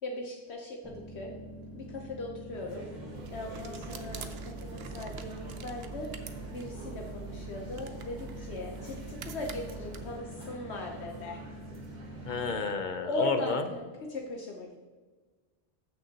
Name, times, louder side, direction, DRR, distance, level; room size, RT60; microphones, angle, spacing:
voice 1, 0.0-1.3 1.7-2.9 3.3-11.4 13.1-14.9, left 2 dB, 75° left, 1 dB, 1.2 m, -39 dB
sound 1, 0.8-12.5, equal, ahead, 1.7 m, -46 dB
sound 2, 2.5-12.7, right 2 dB, 40° right, 1.3 m, -49 dB
sound 3, 3.1-10.2, right 6 dB, 65° right, 0.9 m, -44 dB
voice 2, 12.2-13.6, left 5 dB, 50° left, 8 dB, 0.8 m, -31 dB
14.0 x 6.4 x 2.9 m, 1.4 s
omnidirectional pair, 1.1 m